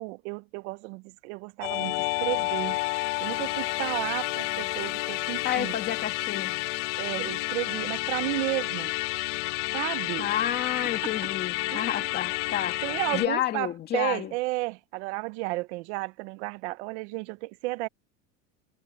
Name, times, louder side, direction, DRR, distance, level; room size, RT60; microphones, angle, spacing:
voice 1, 0.0-2.8 3.2-5.7 7.0-8.9 9.7-10.3 11.0-11.1 11.7-12.1 12.8-17.9, right 21 dB, 60° right, 1.0 m, -33 dB
Musical instrument, 1.6-13.3, left 20 dB, 65° left, 1.4 m, -30 dB
voice 2, 5.4-6.6 10.2-12.8 13.1-14.3, left 11 dB, 25° left, 2.2 m, -30 dB
supercardioid pair, 170°, 38 cm